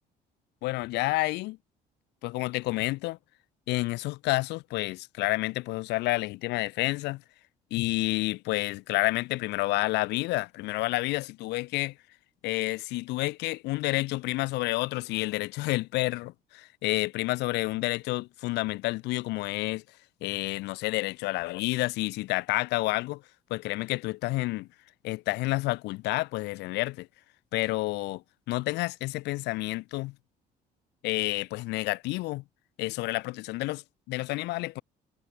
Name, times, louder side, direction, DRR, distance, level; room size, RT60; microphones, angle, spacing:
voice 1, 0.6-1.6 2.2-3.2 3.7-7.2 7.7-11.9 12.4-19.8 20.2-23.2 23.5-24.7 25.0-27.1 27.5-30.1 31.0-32.4 32.8-34.8, left 20 dB, 90° left, 3.4 m, -29 dB
cardioid pair, 110°, 17 cm